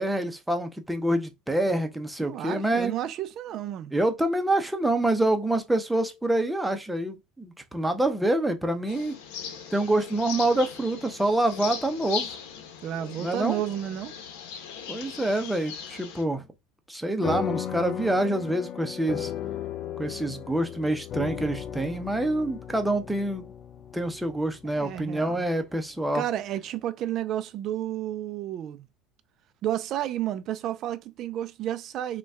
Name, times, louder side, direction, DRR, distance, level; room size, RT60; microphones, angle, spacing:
voice 1, 0.0-2.9 3.9-9.1 9.7-12.3 13.2-13.6 14.9-16.4 16.9-19.3 20.0-23.5 23.9-26.2, right 1 dB, 5° right, 0.6 m, -26 dB
voice 2, 2.2-3.9 12.8-14.2 24.6-25.4 26.1-28.9 29.6-32.2, right 12 dB, 45° right, 0.4 m, -31 dB
sound 1, 8.9-16.2, left 7 dB, 85° left, 0.9 m, -39 dB
sound 2, 17.2-26.0, left 9 dB, 35° left, 0.4 m, -36 dB
5.2 x 2.3 x 3.4 m
cardioid pair, 150°, 0 cm